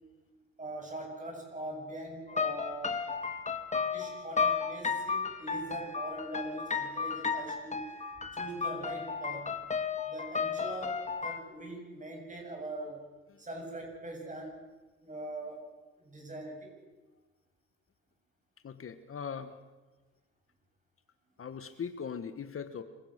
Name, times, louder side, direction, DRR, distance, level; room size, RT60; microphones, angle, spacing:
voice 1, 0.6-3.0 3.8-7.8 8.3-9.5 10.1-13.0 13.4-14.6 15.0-15.6 16.0-16.7, right 1 dB, 25° right, 1 dB, 7.6 m, -42 dB
sound 1, 2.3-11.4, left 5 dB, 25° left, 2.0 m, -33 dB
voice 2, 18.6-19.5 21.4-22.8, left 6 dB, 45° left, 10 dB, 1.4 m, -40 dB
26.5 x 16.5 x 6.7 m, 1.3 s
cardioid pair, 90°, 30 cm